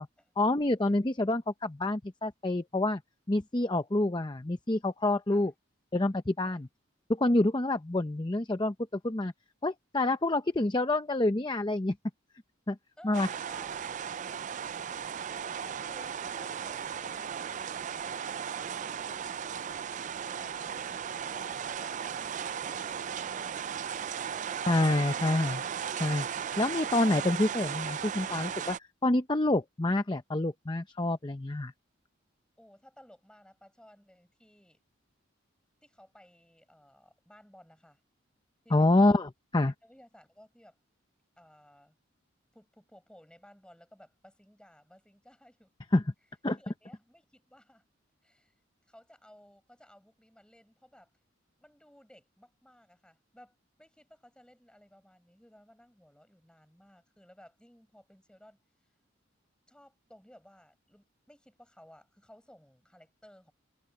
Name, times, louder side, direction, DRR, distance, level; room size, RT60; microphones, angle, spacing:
voice 1, 0.4-3.0 3.3-5.5 5.9-6.7 7.1-9.3 9.6-11.9 12.7-12.8 13.0-13.3 24.7-25.6 26.0-26.3 26.6-28.8 29.0-31.7 38.7-39.7 45.9-46.0 46.4-46.6, left 2 dB, 25° left, 0.7 m, -27 dB
voice 2, 13.0-14.5 15.1-19.9 20.2-20.6 21.2-23.9 32.6-34.8 35.8-38.0 38.6-39.1 39.8-40.8 41.4-42.0 42.5-45.7 46.5-47.8 48.2-48.5 48.9-51.1 51.6-58.6 59.7-63.5, equal, 5° left, 6.5 m, -57 dB
sound 1, 13.1-28.8, right 8 dB, 40° right, 0.3 m, -36 dB
head